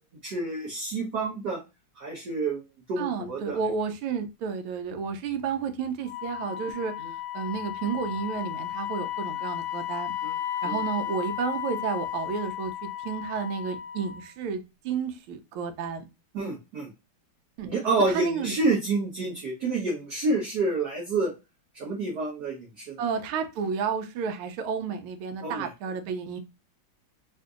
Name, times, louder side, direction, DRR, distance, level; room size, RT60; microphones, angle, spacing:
voice 1, 0.2-1.6 2.0-2.6 2.9-3.6 7.0-7.1 10.2-10.4 10.6-10.8 16.3-16.9 17.6-21.3 21.7-23.0 25.4-25.7, right 3 dB, 60° right, 1.2 m, -28 dB
voice 2, 3.0-6.9 7.3-10.1 10.6-16.0 17.6-17.7 18.1-18.5 23.0-26.4, right 6 dB, 85° right, 1.4 m, -31 dB
Wind instrument woodwind instrument, 6.0-14.3, left 11 dB, 75° left, 1.2 m, -34 dB
3.8 x 2.5 x 2.3 m
omnidirectional pair, 2.3 m